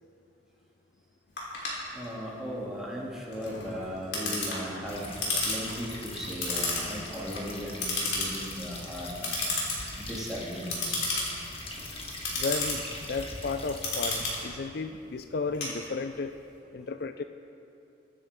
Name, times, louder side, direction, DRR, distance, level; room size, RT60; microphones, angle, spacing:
Clock, 1.4-16.3, left 2 dB, 90° left, 3.6 m, -33 dB
voice 1, 1.9-5.1 5.4-9.7 10.0-11.1, equal, 5° right, -6 dB, 2.6 m, -37 dB
sound 1, 4.9-14.4, left 1 dB, 35° left, 1.7 m, -41 dB
voice 2, 12.3-16.3 16.7-17.2, left 4 dB, 60° left, 9 dB, 0.5 m, -33 dB
22.5 x 9.9 x 3.7 m, 2.7 s
head